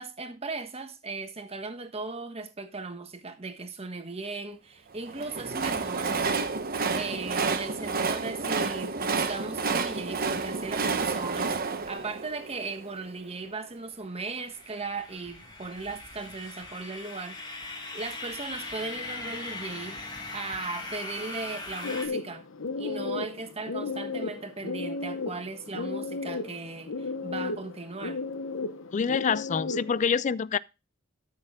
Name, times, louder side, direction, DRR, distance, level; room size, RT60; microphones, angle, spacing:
voice 1, 0.0-6.1 6.9-11.6 11.8-20.0 20.3-22.4 22.8-28.2, right 3 dB, 30° right, 1.3 m, -37 dB
Train, 5.0-13.2, right 4 dB, 50° right, 1.0 m, -30 dB
sound 1, 14.5-22.1, left 2 dB, 20° left, 2.0 m, -40 dB
sound 2, 21.8-30.1, left 3 dB, 80° left, 1.0 m, -34 dB
voice 2, 28.9-30.6, left 6 dB, 40° left, 0.4 m, -26 dB
13.0 x 6.5 x 3.7 m
head